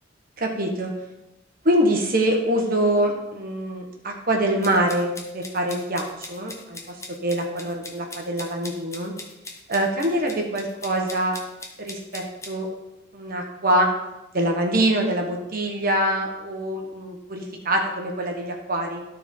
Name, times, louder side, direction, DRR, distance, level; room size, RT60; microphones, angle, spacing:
voice 1, 0.4-0.9 1.6-6.8 7.2-9.1 9.7-11.4 11.8-12.7 13.1-13.9 14.3-19.0, right 1 dB, 50° right, 2 dB, 1.4 m, -24 dB
sound 1, 4.6-12.5, left 3 dB, 15° left, 1.0 m, -40 dB
13.0 x 4.6 x 3.8 m, 0.94 s
head